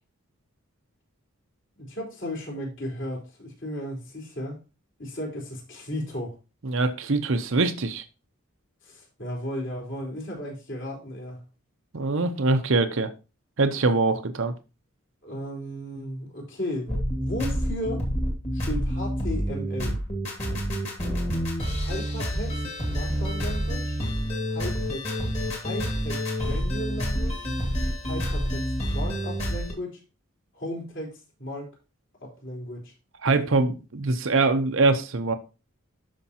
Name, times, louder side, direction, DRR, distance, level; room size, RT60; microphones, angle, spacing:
voice 1, 1.8-4.6 5.0-6.4 8.8-11.4 15.2-18.0 18.5-20.0 21.7-22.6 22.9-24.0 24.5-25.1 25.6-27.4 28.0-30.0 30.5-31.7 32.2-32.9, equal, 55° left, -2 dB, 4.1 m, -35 dB
voice 2, 6.6-8.0 11.9-13.1 13.6-14.5 33.2-35.3, right 3 dB, 65° right, 8 dB, 0.7 m, -23 dB
sound 1, 16.9-29.7, equal, 30° left, 2.2 m, -28 dB
12.5 x 5.2 x 2.9 m, 0.30 s
head